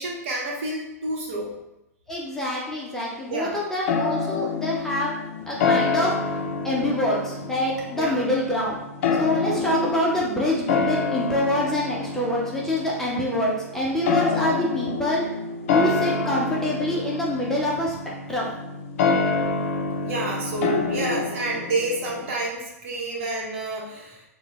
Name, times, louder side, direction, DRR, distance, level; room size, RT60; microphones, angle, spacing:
voice 1, 0.0-1.5 3.3-3.6 7.9-8.2 20.0-24.2, right 2 dB, 55° right, -2 dB, 1.0 m, -29 dB
voice 2, 2.1-5.1 5.5-6.1 6.6-8.8 9.2-15.2 15.7-18.0 18.3-18.5, left 1 dB, 5° left, -5 dB, 0.6 m, -25 dB
sound 1, 3.9-22.3, left 4 dB, 55° left, 0.4 m, -27 dB
3.1 x 2.2 x 3.4 m, 0.90 s
hypercardioid pair, 115°, 9 cm